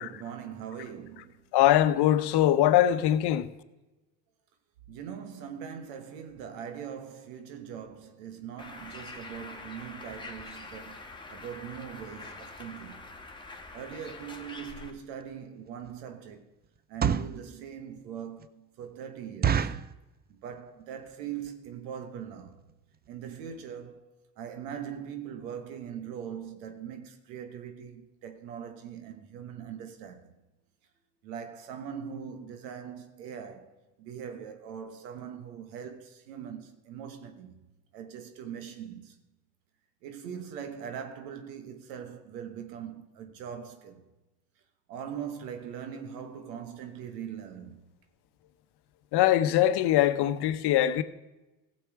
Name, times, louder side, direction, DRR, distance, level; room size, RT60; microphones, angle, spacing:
voice 1, 0.0-1.3 4.9-11.0 11.3-13.1 13.7-16.5 16.9-19.7 20.4-22.6 23.1-24.0 24.4-30.3 31.2-37.6 37.9-39.2 40.0-44.0 44.9-47.8, right 8 dB, 75° right, 1.3 m, -41 dB
voice 2, 1.5-3.5 49.1-51.0, left 12 dB, 55° left, 0.9 m, -22 dB
Bird, 8.6-14.9, left 3 dB, 10° left, 1.7 m, -45 dB
sound 1, 15.2-15.3 15.8-16.1 16.8-17.4 18.0-18.1 18.4-18.5 18.8-18.9 19.4-19.9 20.5-20.8 21.1-21.2 21.4-21.7 22.2-22.3 22.5-22.7 23.1-23.2 23.4-23.5, right 7 dB, 20° right, 0.5 m, -28 dB
15.5 x 7.1 x 4.7 m
hypercardioid pair, 65°, 49 cm